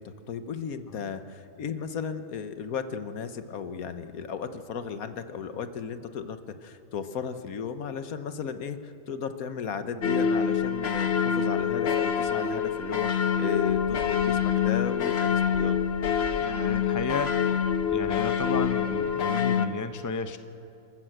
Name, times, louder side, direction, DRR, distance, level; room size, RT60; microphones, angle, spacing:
voice 1, 0.0-15.8, left 6 dB, 80° left, 10 dB, 1.5 m, -35 dB
sound 1, 10.0-19.7, left 7 dB, 50° left, 1.1 m, -26 dB
voice 2, 16.4-17.6 17.9-20.4, left 4 dB, 15° left, 9 dB, 0.7 m, -33 dB
28.5 x 14.0 x 8.0 m, 2.6 s
omnidirectional pair, 1.5 m